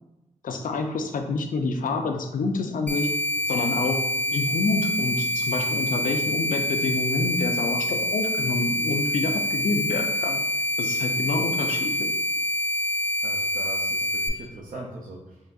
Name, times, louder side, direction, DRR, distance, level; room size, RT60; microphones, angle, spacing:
voice 1, 0.4-3.1 3.5-4.0 4.3-10.4 10.8-12.1, left 3 dB, 85° left, 5 dB, 0.4 m, -27 dB
sound 1, 2.9-14.3, left 1 dB, 10° left, 0.3 m, -26 dB
voice 2, 13.2-15.4, right 2 dB, 85° right, -2 dB, 0.4 m, -40 dB
3.8 x 2.5 x 2.3 m, 0.96 s
wide cardioid pair, 125°, 14 cm